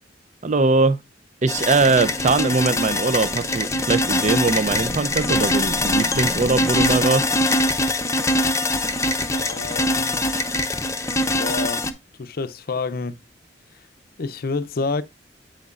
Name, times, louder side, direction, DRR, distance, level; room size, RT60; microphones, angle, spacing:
voice 1, 0.4-1.0 1.4-7.3, right 3 dB, 40° right, 0.5 m, -21 dB
sound 1, 1.5-11.9, left 1 dB, 15° left, 0.7 m, -23 dB
sound 2, 2.8-7.0, equal, 80° right, 1.2 m, -38 dB
voice 2, 9.3-10.2 11.3-11.8 12.2-13.1 14.2-15.0, left 4 dB, 55° left, 0.6 m, -28 dB
8.1 x 7.8 x 2.4 m
head